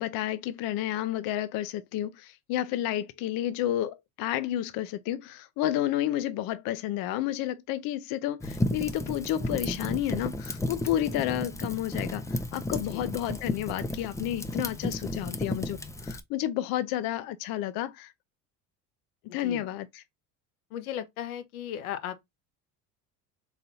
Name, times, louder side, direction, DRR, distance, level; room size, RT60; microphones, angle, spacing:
voice 1, 0.0-18.1 19.3-20.0, left 12 dB, 55° left, 0.5 m, -31 dB
Fire, 8.4-16.2, left 1 dB, 5° left, 0.5 m, -33 dB
voice 2, 19.3-19.6 20.7-22.2, left 10 dB, 80° left, 0.9 m, -36 dB
3.9 x 3.8 x 2.7 m
hypercardioid pair, 70°, 43 cm